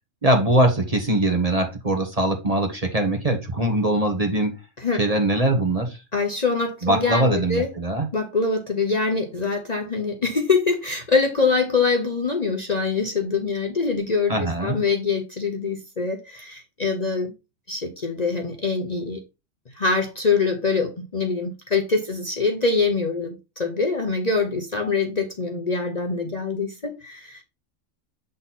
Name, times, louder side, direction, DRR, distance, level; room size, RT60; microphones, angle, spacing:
voice 1, 0.2-4.5 5.0-6.0 6.8-8.1 14.3-14.8, right 1 dB, 30° right, 1.3 m, -22 dB
voice 2, 6.1-7.7 8.1-17.3 17.7-19.2 19.7-27.4, left 4 dB, 35° left, 0.9 m, -24 dB
7.5 x 4.0 x 4.1 m
omnidirectional pair, 1.4 m